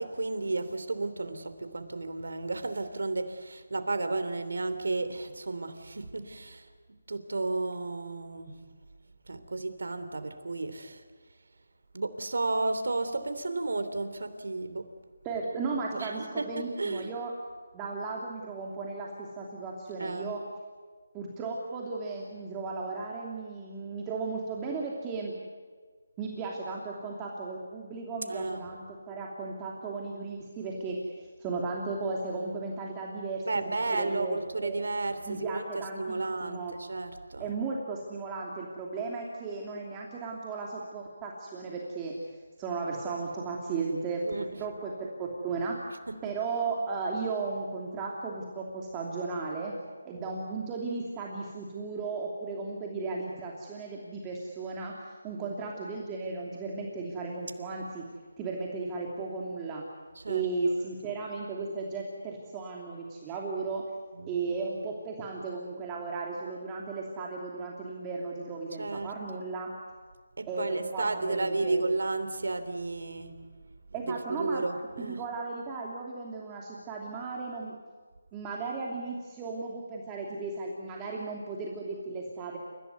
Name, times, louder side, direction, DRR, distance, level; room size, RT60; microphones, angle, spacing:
voice 1, 0.0-6.7 7.1-8.6 9.3-11.0 11.9-14.9 15.9-17.1 20.0-20.3 28.3-28.7 33.5-37.5 44.2-44.5 46.1-46.2 55.4-55.5 60.1-60.5 64.1-64.4 68.8-69.4 70.4-73.4 74.0-75.2, right 3 dB, 75° right, 10 dB, 3.3 m, -33 dB
voice 2, 15.2-17.3 17.7-20.4 21.1-25.3 26.2-34.8 35.2-36.7 37.4-42.1 42.6-45.8 46.2-49.7 50.0-58.0 58.4-59.8 60.3-63.8 64.3-69.7 70.5-71.8 73.9-74.6 75.0-77.8 78.3-82.6, right 4 dB, 15° right, -1 dB, 2.9 m, -35 dB
29.5 x 16.5 x 9.4 m, 1.5 s
figure-of-eight pair, 165°, 0 cm